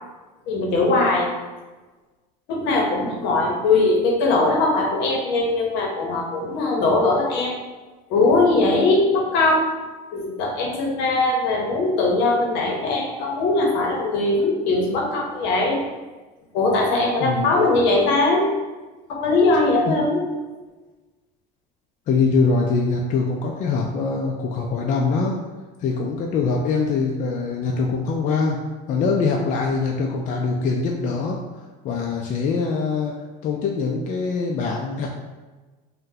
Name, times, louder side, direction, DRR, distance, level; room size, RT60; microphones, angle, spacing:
voice 1, 0.5-1.3 2.5-7.5 8.1-9.7 10.1-15.8 16.5-18.5 19.1-20.3, left 2 dB, 65° left, 0 dB, 0.8 m, -20 dB
voice 2, 17.2-17.5 19.9-20.0 22.1-25.4 25.8-28.6 28.9-35.1, left 4 dB, 40° left, 0 dB, 0.4 m, -23 dB
3.7 x 2.2 x 2.7 m, 1.3 s
supercardioid pair, 100°, 19 cm